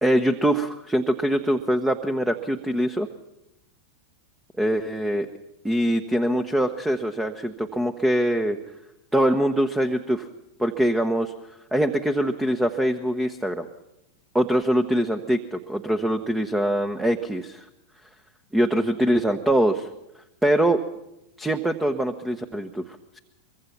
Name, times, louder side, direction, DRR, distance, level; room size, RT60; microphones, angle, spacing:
voice 1, 0.0-3.1 4.6-5.3 5.6-8.6 9.1-10.3 10.6-11.3 11.7-13.7 14.3-17.6 18.5-19.9 20.4-20.8 21.4-23.2, right 1 dB, 5° right, 8 dB, 1.2 m, -23 dB
24.0 x 23.0 x 6.0 m, 0.89 s
figure-of-eight pair, 90°, 0 cm